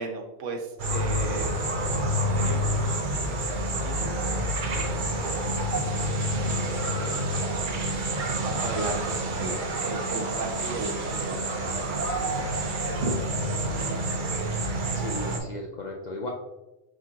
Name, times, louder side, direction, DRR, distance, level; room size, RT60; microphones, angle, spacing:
voice 1, 0.0-1.6 2.3-4.4 4.7-5.5 5.8-7.1 7.8-8.1 8.4-14.0, right 3 dB, 80° right, 4 dB, 1.1 m, -38 dB
sound 1, 0.8-15.4, right 1 dB, 50° right, 0.7 m, -28 dB
voice 2, 14.9-16.3, left 2 dB, 60° left, 0 dB, 0.4 m, -35 dB
4.9 x 3.8 x 2.8 m, 1.0 s
omnidirectional pair, 1.2 m